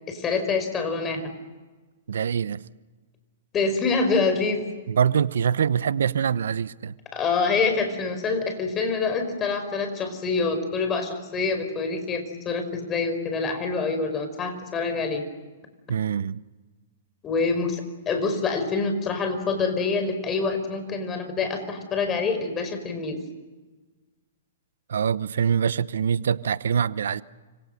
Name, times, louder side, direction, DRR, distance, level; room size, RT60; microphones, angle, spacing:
voice 1, 0.1-1.3 3.5-4.6 7.1-15.2 17.2-23.2, left 4 dB, 20° left, 5.4 m, -26 dB
voice 2, 2.1-2.6 4.9-6.9 15.9-16.4 24.9-27.2, right 7 dB, 80° right, 0.8 m, -24 dB
29.5 x 27.0 x 6.7 m
hypercardioid pair, 140°, 0 cm